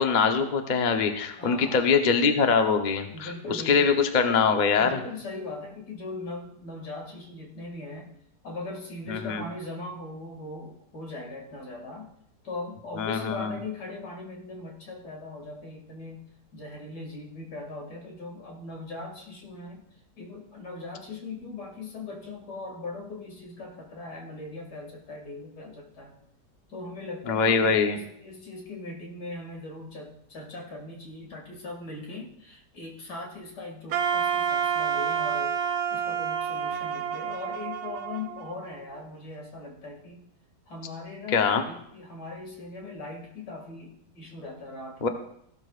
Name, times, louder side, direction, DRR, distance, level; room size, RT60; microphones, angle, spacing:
voice 1, 0.0-5.0 9.1-9.4 13.0-13.5 27.3-28.0 41.3-41.6 45.0-45.1, left 5 dB, 40° left, 5 dB, 0.7 m, -23 dB
voice 2, 1.4-1.8 3.1-3.9 4.8-8.1 8.4-12.1 12.4-16.2 16.5-19.9 20.2-26.2 26.7-35.6 35.9-40.2 40.7-45.1, left 2 dB, 70° left, 0 dB, 2.8 m, -40 dB
Wind instrument woodwind instrument, 33.9-39.0, right 8 dB, 65° right, 1.1 m, -29 dB
15.5 x 12.5 x 2.4 m, 0.72 s
omnidirectional pair, 1.8 m